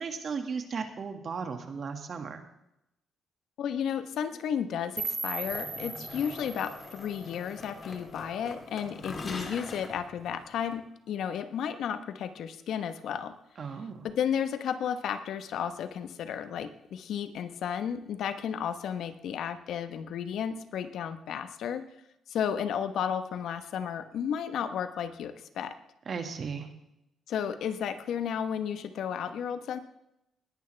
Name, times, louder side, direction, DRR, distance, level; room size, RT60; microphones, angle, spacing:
voice 1, 0.0-2.4 13.6-14.1 26.1-26.7, right 5 dB, 50° right, 6 dB, 1.9 m, -35 dB
voice 2, 3.6-13.4 14.0-21.8 22.3-25.8 27.3-29.8, left 8 dB, 75° left, 10 dB, 1.1 m, -33 dB
sound 1, 5.0-8.0, right 4 dB, 35° right, 3.0 m, -38 dB
sound 2, 5.4-10.8, left 3 dB, 35° left, 2.7 m, -43 dB
20.0 x 10.5 x 3.4 m, 0.84 s
cardioid pair, 90°, 0 cm